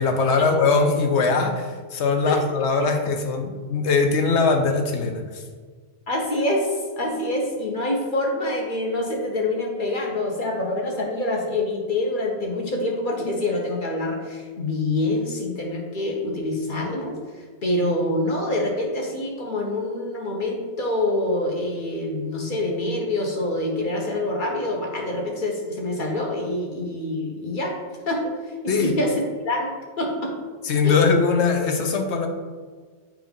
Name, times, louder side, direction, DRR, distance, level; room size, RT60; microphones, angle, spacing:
voice 1, 0.0-5.4 28.7-28.9 30.6-32.3, left 4 dB, 85° left, 5 dB, 1.0 m, -21 dB
voice 2, 6.1-27.8 28.1-29.7 30.0-30.3 30.8-30.9, left 1 dB, 50° left, 0 dB, 1.2 m, -26 dB
7.7 x 2.6 x 5.2 m, 1.5 s
omnidirectional pair, 1.1 m